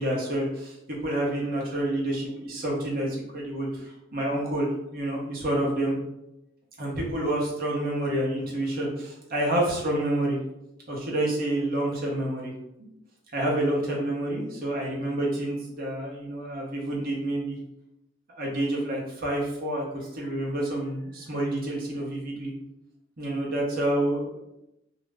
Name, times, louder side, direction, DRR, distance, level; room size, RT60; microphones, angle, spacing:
voice 1, 0.0-5.9 6.8-10.4 10.9-12.5 13.3-17.6 18.4-22.5 23.2-24.7, right 1 dB, 50° right, -2 dB, 0.8 m, -28 dB
2.5 x 2.1 x 3.3 m, 0.87 s
head